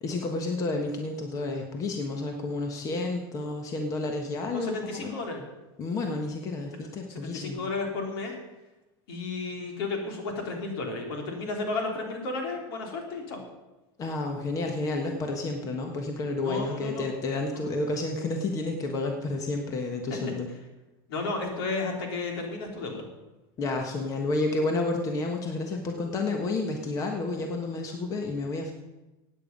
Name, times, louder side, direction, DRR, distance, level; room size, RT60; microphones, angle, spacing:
voice 1, 0.0-5.1 5.8-7.6 14.0-20.5 23.6-28.7, left 2 dB, 25° left, 3 dB, 1.3 m, -30 dB
voice 2, 4.5-5.4 7.1-8.4 9.1-13.4 16.4-17.1 17.5-17.6 21.1-23.1, left 3 dB, 75° left, 1 dB, 3.5 m, -33 dB
16.0 x 9.1 x 5.3 m, 1.1 s
supercardioid pair, 155°, 13 cm